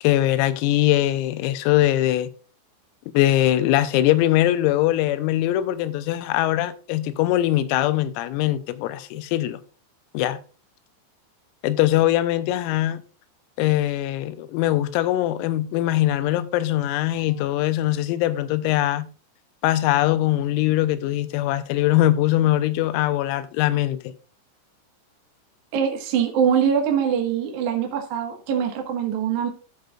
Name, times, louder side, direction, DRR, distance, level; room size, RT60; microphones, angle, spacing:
voice 1, 0.0-2.3 3.2-9.6 10.2-10.4 11.6-13.0 13.6-19.1 19.6-24.1, left 14 dB, 85° left, 3.4 m, -21 dB
voice 2, 25.7-29.5, right 8 dB, 70° right, 1.8 m, -23 dB
14.5 x 6.5 x 2.4 m
omnidirectional pair, 6.0 m